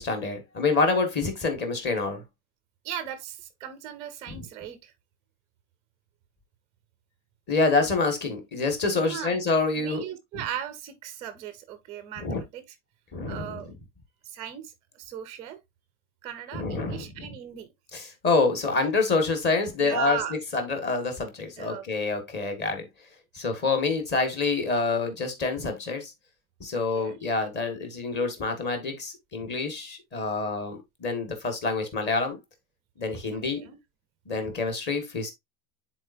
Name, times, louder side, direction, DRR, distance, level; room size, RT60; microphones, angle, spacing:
voice 1, 0.0-2.2 4.3-4.4 7.5-10.0 12.2-12.4 13.1-13.6 16.5-17.3 17.9-20.2 20.5-22.8 23.3-26.1 26.6-32.4 33.0-33.7 34.2-35.3, left 3 dB, 25° left, 1.7 m, -27 dB
voice 2, 2.8-4.9 9.0-9.4 9.8-12.6 13.3-13.7 14.2-15.6 16.2-17.7 19.8-20.3 21.6-21.9 26.7-27.2 33.3-33.8, right 10 dB, 15° right, 0.4 m, -37 dB
9.8 x 4.3 x 2.6 m
supercardioid pair, 165°, 42 cm